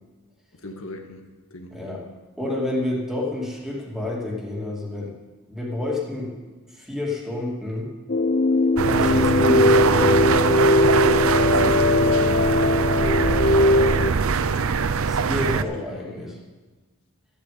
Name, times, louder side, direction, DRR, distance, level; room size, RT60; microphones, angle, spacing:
voice 1, 0.5-1.8 11.4-12.6 13.8-15.0 15.5-16.4, left 1 dB, 75° left, 3 dB, 1.7 m, -39 dB
voice 2, 2.4-5.1 5.5-6.3 6.7-7.9 8.9-10.5 13.4-13.6 15.1-16.3, left 2 dB, ahead, -3 dB, 2.6 m, -29 dB
sound 1, 8.1-14.1, left 2 dB, 45° left, 0.5 m, -19 dB
sound 2, 8.8-15.6, right 5 dB, 80° right, 0.6 m, -22 dB
13.5 x 8.5 x 8.6 m, 1.3 s
head